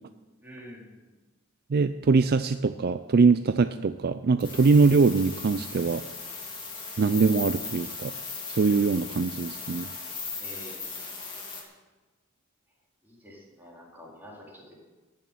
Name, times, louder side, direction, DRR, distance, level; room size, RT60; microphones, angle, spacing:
voice 1, 0.4-1.0 10.4-11.1 13.0-14.7, equal, 10° right, -4 dB, 4.0 m, -47 dB
voice 2, 1.7-6.0 7.0-8.1 8.5-9.9, right 4 dB, 50° right, 11 dB, 0.4 m, -22 dB
sound 1, 4.4-11.6, left 4 dB, 25° left, 3.3 m, -38 dB
14.5 x 7.0 x 9.1 m, 1.2 s
head